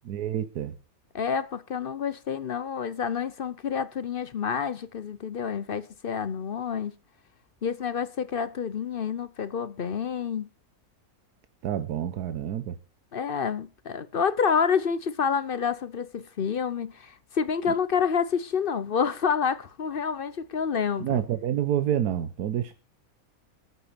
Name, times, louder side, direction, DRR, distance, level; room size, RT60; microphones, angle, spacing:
voice 1, 0.0-0.7 11.6-12.8 21.0-22.7, right 10 dB, 90° right, 1.4 m, -28 dB
voice 2, 1.1-6.9 7.6-10.5 13.1-21.2, left 6 dB, 50° left, 0.7 m, -28 dB
12.5 x 8.4 x 6.8 m
omnidirectional pair, 1.6 m